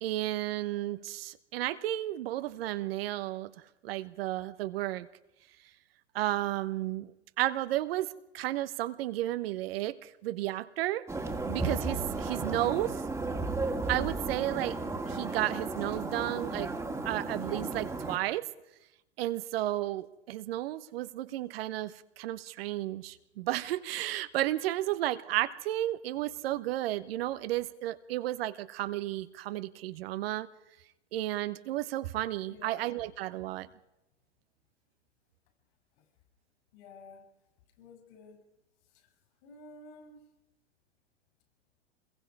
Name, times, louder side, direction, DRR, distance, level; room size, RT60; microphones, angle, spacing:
voice 1, 0.0-3.5 3.8-5.1 6.1-7.1 7.4-11.0 11.4-13.0 13.9-14.8 15.1-16.7 17.0-18.5 19.2-30.5 31.1-33.7, right 15 dB, 55° right, 12 dB, 1.1 m, -33 dB
sound 1, 11.1-18.2, right 3 dB, 5° right, 2.1 m, -34 dB
voice 2, 32.5-33.1 36.7-37.2 37.8-38.4 38.9-39.1 39.4-40.2, left 3 dB, 55° left, 3 dB, 7.1 m, -51 dB
26.5 x 22.0 x 4.8 m, 0.92 s
hypercardioid pair, 100°, 34 cm